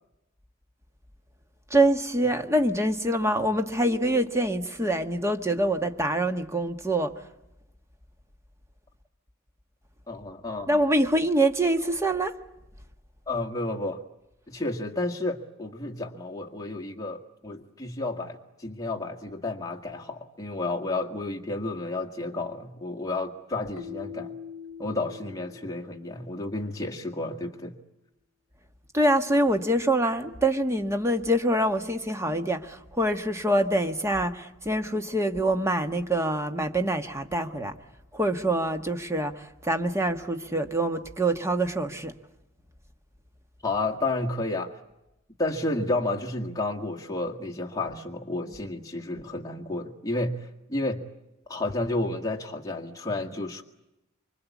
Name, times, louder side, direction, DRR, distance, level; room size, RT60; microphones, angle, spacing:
voice 1, 1.7-7.1 10.7-12.3 28.9-37.7 38.1-42.1, right 1 dB, 15° right, 1.5 m, -25 dB
voice 2, 10.1-10.8 13.3-14.0 14.5-24.3 24.8-27.8 43.6-44.8 45.4-51.0 51.5-53.6, left 2 dB, 15° left, 1.9 m, -31 dB
Keyboard (musical), 23.8-26.6, left 7 dB, 80° left, 0.9 m, -43 dB
25.5 x 25.0 x 8.4 m
head